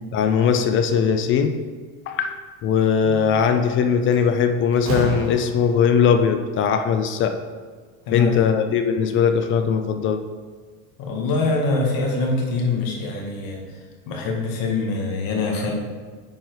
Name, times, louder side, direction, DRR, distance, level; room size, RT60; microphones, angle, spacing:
voice 1, 0.1-1.6 2.1-2.4 2.6-7.4 8.1-10.2, left 7 dB, 30° left, 8 dB, 0.4 m, -20 dB
Slam, 3.5-3.7 4.1-6.0, right 2 dB, 50° right, 2.3 m, -30 dB
voice 2, 11.0-13.6 14.1-15.7, left 3 dB, 50° left, 0 dB, 2.0 m, -24 dB
9.2 x 4.6 x 4.7 m, 1.5 s
supercardioid pair, 130°, 46 cm